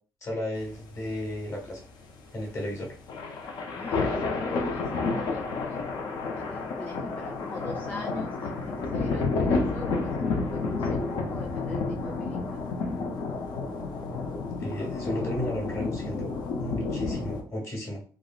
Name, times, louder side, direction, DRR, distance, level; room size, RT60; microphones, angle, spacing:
voice 1, 0.2-1.8 2.3-2.9 14.6-16.3 16.6-18.0, left 1 dB, 40° left, -1 dB, 1.3 m, -34 dB
sound 1, 0.6-17.4, left 3 dB, 75° left, 0.6 m, -30 dB
voice 2, 3.7-5.8 6.4-12.6, left 2 dB, 15° left, 2 dB, 0.4 m, -42 dB
3.5 x 2.0 x 2.4 m, 0.42 s
cardioid pair, 90°, 7 cm